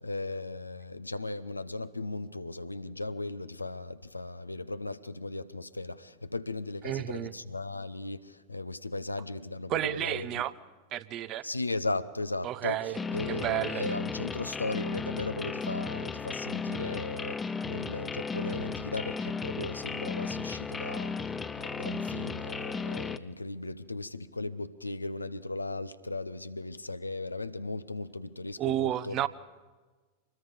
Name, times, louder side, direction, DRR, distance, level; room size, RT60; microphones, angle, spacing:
voice 1, 0.0-10.4 11.4-12.8 13.1-21.3 21.5-29.3, left 2 dB, 85° left, 0.8 m, -37 dB
voice 2, 6.8-7.3 9.7-10.5 10.9-11.5 12.4-13.0 13.3-13.8 28.6-29.3, right 13 dB, 35° right, 0.8 m, -31 dB
sound 1, 12.9-23.2, left 5 dB, 15° left, 0.7 m, -35 dB
25.5 x 20.5 x 5.2 m
figure-of-eight pair, 90°, 0 cm